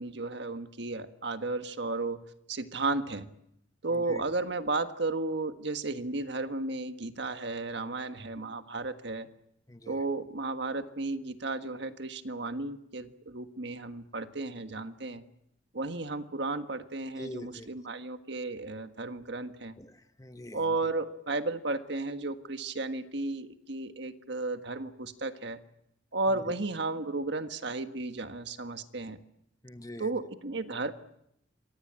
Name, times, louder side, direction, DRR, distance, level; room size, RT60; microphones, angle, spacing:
voice 1, 0.0-2.2 2.5-3.3 3.8-9.3 9.9-15.2 15.7-19.7 20.5-25.6 26.1-29.2 30.0-30.9, right 3 dB, 60° right, 9 dB, 1.6 m, -34 dB
voice 2, 9.7-10.0 17.2-17.7 19.8-20.9 29.6-30.1, left 1 dB, 20° left, 9 dB, 1.3 m, -44 dB
27.5 x 24.0 x 8.9 m, 0.79 s
head